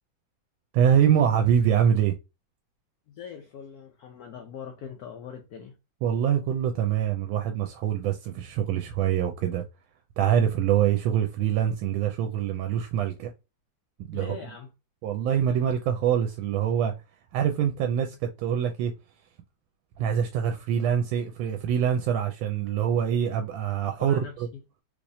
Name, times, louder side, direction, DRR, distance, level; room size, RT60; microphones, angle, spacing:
voice 1, 0.7-2.1 6.0-9.6 10.2-13.3 14.0-14.4 15.0-16.9 17.3-18.9 20.0-24.2, right 9 dB, 90° right, 1.4 m, -24 dB
voice 2, 3.1-5.8 14.1-14.7 24.0-24.6, left 7 dB, 75° left, 0.9 m, -41 dB
3.4 x 3.0 x 2.6 m
omnidirectional pair, 2.1 m